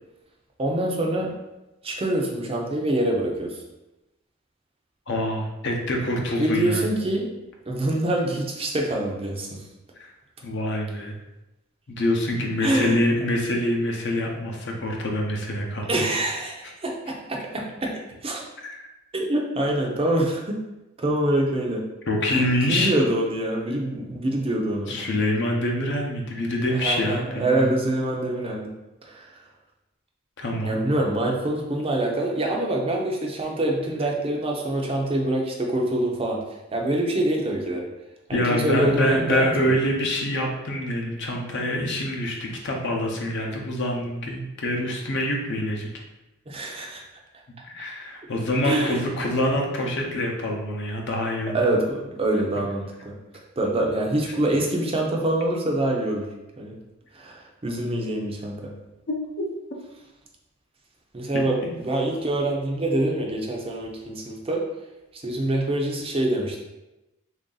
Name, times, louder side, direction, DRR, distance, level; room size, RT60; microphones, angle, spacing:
voice 1, 0.6-1.3 1.8-3.6 6.4-7.3 7.7-9.6 12.6-13.0 15.9-18.4 19.1-20.6 21.0-21.9 22.3-24.9 26.7-28.7 29.0-29.3 30.6-36.4 36.7-37.9 38.3-39.8 46.5-47.0 48.6-49.0 51.5-56.3 56.6-56.8 57.1-58.8 61.1-64.7 65.1-66.6, right 1 dB, 25° right, -1 dB, 0.5 m, -25 dB
voice 2, 5.1-6.9 10.0-10.1 10.4-11.1 11.9-16.0 22.1-22.9 24.9-27.7 30.4-30.8 38.3-45.9 47.6-51.6 59.1-59.2 61.3-61.7, left 1 dB, 55° left, 1 dB, 0.6 m, -25 dB
3.3 x 2.6 x 3.8 m, 0.98 s
head